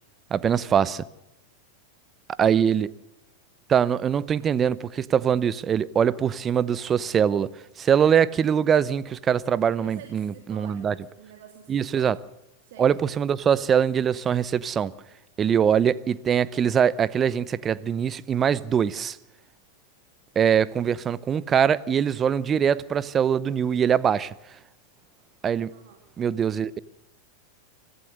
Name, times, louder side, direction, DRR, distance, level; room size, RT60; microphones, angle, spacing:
voice 1, 0.3-1.0 2.4-2.9 3.7-7.5 7.8-10.9 11.7-12.2 12.8-14.9 15.4-19.2 20.3-24.3 25.4-25.7 26.2-26.8, right 8 dB, 30° right, 0.8 m, -22 dB
voice 2, 9.8-12.1 12.6-12.9 25.7-26.0, right 8 dB, 65° right, 3.0 m, -48 dB
25.0 x 15.5 x 6.7 m
hypercardioid pair, 95°, 0 cm